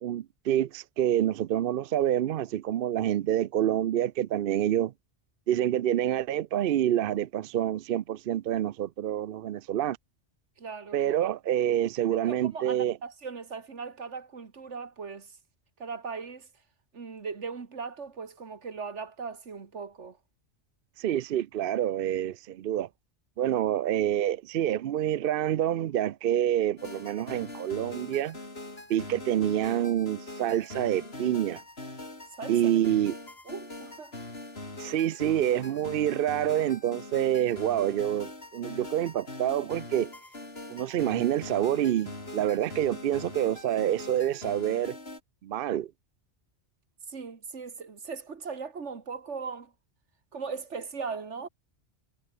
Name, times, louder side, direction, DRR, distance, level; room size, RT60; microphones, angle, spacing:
voice 1, 0.0-4.9 5.5-10.0 10.9-13.0 21.0-22.9 23.4-28.4 28.9-31.6 32.5-33.1 34.8-40.1 40.7-45.0 45.4-45.9, right 11 dB, 60° right, 0.7 m, -27 dB
voice 2, 10.6-11.0 12.1-15.3 15.8-16.5 16.9-20.2 32.4-32.6 33.5-34.2 47.1-49.7 50.3-51.5, right 5 dB, 80° right, 2.1 m, -38 dB
sound 1, 26.8-45.2, left 2 dB, 60° left, 4.9 m, -42 dB
omnidirectional pair, 1.2 m